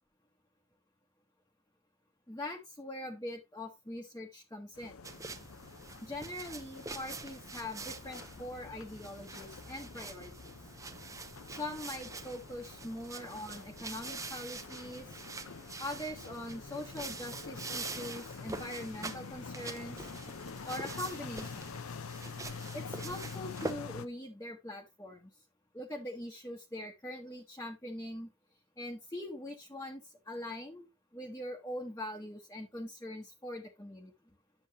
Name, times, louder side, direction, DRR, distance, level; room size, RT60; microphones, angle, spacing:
voice 1, 2.3-5.0 6.0-10.3 11.5-15.2 15.8-20.1 20.6-21.7 22.7-25.3 25.7-28.3 28.8-34.1, left 1 dB, 15° left, -1 dB, 1.1 m, -42 dB
sound 1, 4.7-24.1, left 5 dB, 85° left, 0.7 m, -47 dB
sound 2, 5.0-23.7, right 3 dB, 15° right, 0.7 m, -45 dB
10.5 x 7.0 x 2.8 m, 0.22 s
head